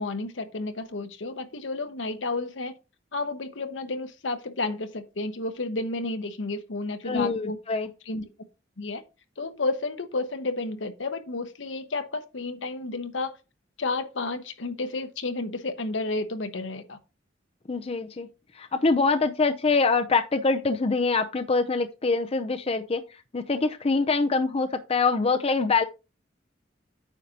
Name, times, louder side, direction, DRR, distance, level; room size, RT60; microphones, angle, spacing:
voice 1, 0.0-2.7 3.1-7.6 8.1-8.2 8.8-9.0 9.4-13.3 13.8-17.0, left 3 dB, 75° left, 1.0 m, -31 dB
voice 2, 7.1-7.9 17.7-18.3 18.5-23.0 23.3-25.8, left 4 dB, 35° left, 0.5 m, -24 dB
9.2 x 6.5 x 2.8 m
head